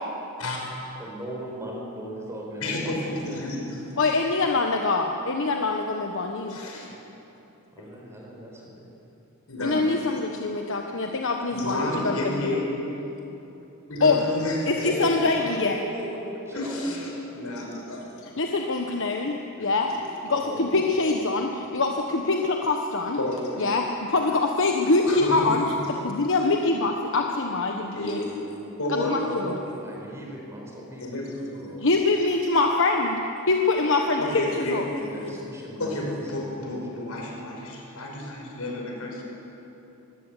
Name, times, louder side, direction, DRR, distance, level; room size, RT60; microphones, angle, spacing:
voice 1, 1.0-3.5 7.7-8.8 14.8-17.4 20.3-21.7 29.8-31.9 35.1-37.1, right 1 dB, 15° right, -2 dB, 4.9 m, -38 dB
voice 2, 2.6-3.9 6.5-6.9 9.5-9.9 11.5-12.7 13.9-15.2 16.5-18.3 19.9-20.0 23.1-23.6 25.1-25.5 27.9-29.6 31.0-31.4 34.2-35.3 35.8-39.2, left 1 dB, 80° left, 0 dB, 5.5 m, -31 dB
voice 3, 4.0-6.6 9.6-12.6 14.0-14.2 14.7-15.8 18.4-19.9 20.2-23.2 23.6-28.2 28.9-29.6 31.8-34.2 34.6-34.8, left 3 dB, 60° left, 2 dB, 1.2 m, -24 dB
23.0 x 16.5 x 8.4 m, 3.0 s
head